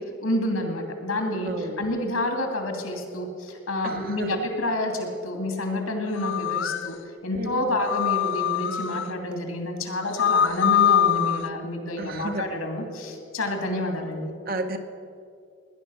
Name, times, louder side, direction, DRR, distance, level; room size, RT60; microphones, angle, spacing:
voice 1, 0.2-7.0 7.2-14.3, left 1 dB, 80° left, 4 dB, 2.6 m, -28 dB
voice 2, 1.5-1.8 3.8-4.3 7.3-7.6 12.0-12.5 14.5-14.8, right 2 dB, 40° right, 6 dB, 1.0 m, -32 dB
sound 1, 6.2-6.9 7.9-9.1 10.0-11.5, left 10 dB, 55° left, 0.5 m, -23 dB
17.5 x 11.0 x 6.5 m, 2.4 s
head